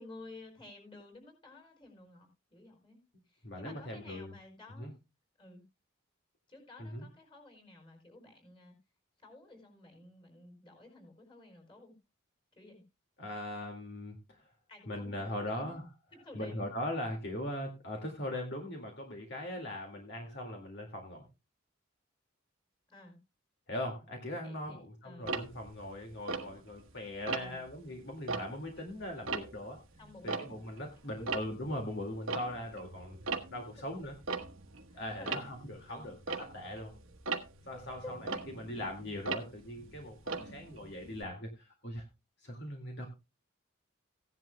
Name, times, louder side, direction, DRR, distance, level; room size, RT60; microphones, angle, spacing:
voice 1, 0.0-3.0 3.3-4.9 5.4-5.6 6.5-8.7 9.2-11.9 12.5-12.8 14.7-15.8 16.1-16.6 22.9-23.2 24.4-24.8 25.0-25.3 27.1-27.6 30.0-30.8 31.2-31.3 34.9-35.4 35.9-36.1 37.6-38.1 40.3-40.6, left 2 dB, 25° left, 2 dB, 4.7 m, -53 dB
voice 2, 3.4-4.3 4.8-4.9 6.8-7.0 13.2-14.4 14.9-15.9 16.3-21.2 23.7-29.8 30.2-33.2 33.5-34.2 34.9-36.9 37.7-42.0 42.4-43.1, left 1 dB, 60° left, 2 dB, 2.0 m, -40 dB
Tick-tock, 25.3-26.9 27.3-27.7 28.1-30.9 31.1-41.2, right 4 dB, 85° right, 1.3 m, -40 dB
16.5 x 10.5 x 2.2 m, 0.27 s
head